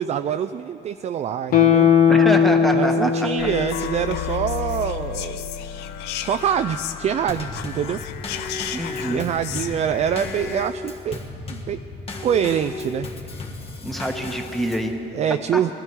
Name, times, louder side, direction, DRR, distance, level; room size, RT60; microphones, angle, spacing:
voice 1, 0.0-1.9 2.7-5.4 6.2-8.0 9.0-11.2 11.5-11.8 12.2-13.1 15.1-15.7, right 9 dB, 40° right, 10 dB, 0.3 m, -25 dB
Guitar, 1.5-4.8 5.1-5.2, left 7 dB, 60° left, 1.2 m, -19 dB
voice 2, 2.1-3.3 8.7-9.2 13.8-15.0 15.5-15.6, equal, ahead, 4 dB, 1.2 m, -25 dB
sound 1, 3.4-10.7, left 10 dB, 85° left, 0.6 m, -32 dB
Drum kit / Snare drum / Bass drum, 7.3-15.0, left 2 dB, 35° left, 1.7 m, -34 dB
19.0 x 12.5 x 4.6 m, 2.9 s
cardioid pair, 110°, 17 cm